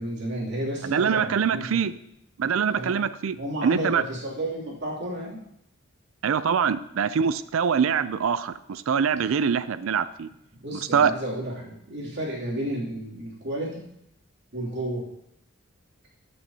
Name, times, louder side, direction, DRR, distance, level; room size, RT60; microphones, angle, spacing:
voice 1, 0.0-1.8 2.7-3.0 3.3-5.4 10.5-13.8 14.5-15.0, right 1 dB, 55° right, -4 dB, 2.8 m, -32 dB
voice 2, 0.8-1.9 2.4-3.4 3.6-4.0 6.2-10.3 10.9-11.1, right 7 dB, 75° right, 15 dB, 0.4 m, -24 dB
14.5 x 6.3 x 2.8 m, 0.79 s
head